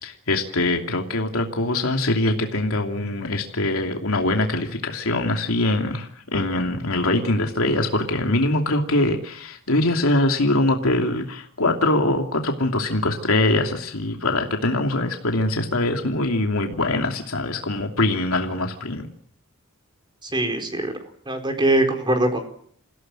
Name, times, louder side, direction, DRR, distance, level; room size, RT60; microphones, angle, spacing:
voice 1, 0.0-19.1, left 2 dB, 85° left, 3 dB, 2.8 m, -23 dB
voice 2, 20.2-20.9 21.3-22.5, right 1 dB, 20° right, 5 dB, 4.4 m, -22 dB
28.0 x 17.0 x 7.8 m, 0.64 s
head